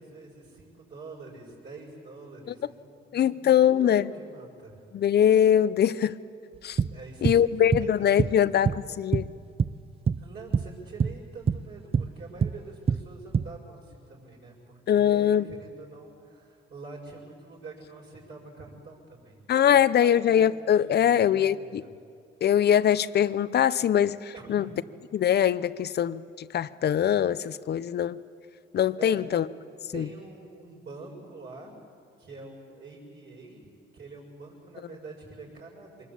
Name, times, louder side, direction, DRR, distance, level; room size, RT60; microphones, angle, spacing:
voice 1, 0.0-4.8 6.9-8.7 10.2-19.4 19.7-20.3 20.7-21.9 24.3-24.7 29.0-29.3 29.9-31.7 32.2-33.7 33.9-36.0, right 3 dB, 60° right, -3 dB, 6.9 m, -45 dB
voice 2, 3.1-4.0 4.9-6.1 6.6-6.8 7.2-9.3 14.9-15.5 19.5-21.8 22.4-24.7 25.1-28.2 28.7-29.4 29.9-30.1, left 9 dB, 55° left, 16 dB, 0.7 m, -22 dB
sound 1, 6.6-9.8 10.1-10.3 10.5-13.6, right 6 dB, 30° right, 0.5 m, -26 dB
24.5 x 20.5 x 8.6 m, 2.3 s
cardioid pair, 90°, 20 cm